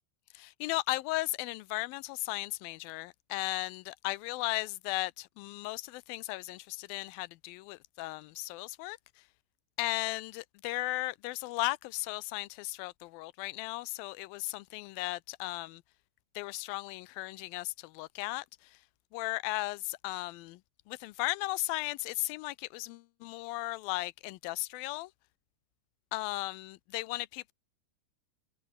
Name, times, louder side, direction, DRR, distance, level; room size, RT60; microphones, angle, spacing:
voice 1, 0.3-9.0 9.8-15.8 16.4-18.5 19.1-20.6 20.9-25.1 26.1-27.5, left 20 dB, 90° left, 2.4 m, -36 dB
omnidirectional pair, 4.2 m